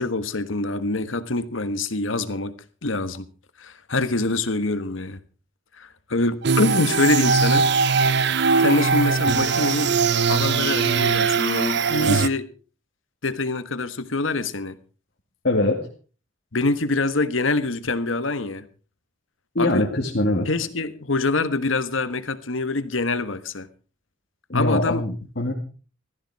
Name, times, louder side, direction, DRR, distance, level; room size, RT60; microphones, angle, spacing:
voice 1, 0.0-2.5 2.8-3.3 3.6-5.2 5.8-7.6 8.6-9.9 10.3-12.5 13.2-14.8 16.5-18.7 19.6-19.9 20.5-23.7 24.5-25.0, left 2 dB, 85° left, 1.4 m, -25 dB
sound 1, 6.4-12.3, right 5 dB, 60° right, 0.8 m, -20 dB
voice 2, 15.4-15.8 19.5-20.5 24.5-25.5, left 2 dB, 55° left, 2.4 m, -22 dB
16.5 x 14.0 x 4.7 m
head